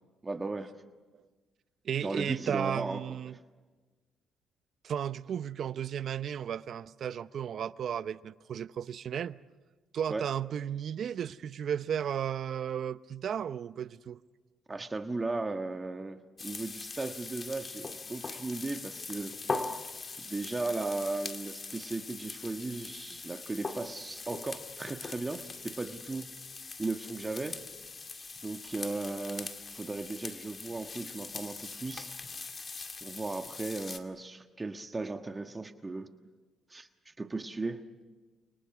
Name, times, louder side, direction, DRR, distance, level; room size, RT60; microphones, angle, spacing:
voice 1, 0.2-0.7 2.0-3.0 10.1-10.2 14.7-19.4 20.2-26.2 26.8-27.6 28.4-32.1 33.0-36.1 36.7-37.8, right 3 dB, 25° right, 1.5 m, -36 dB
voice 2, 1.8-3.4 4.8-9.4 9.9-14.2, right 9 dB, 60° right, 0.7 m, -34 dB
sound 1, 16.4-34.0, left 4 dB, 35° left, 2.2 m, -41 dB
30.0 x 24.0 x 6.1 m
cardioid pair, 80°, 0 cm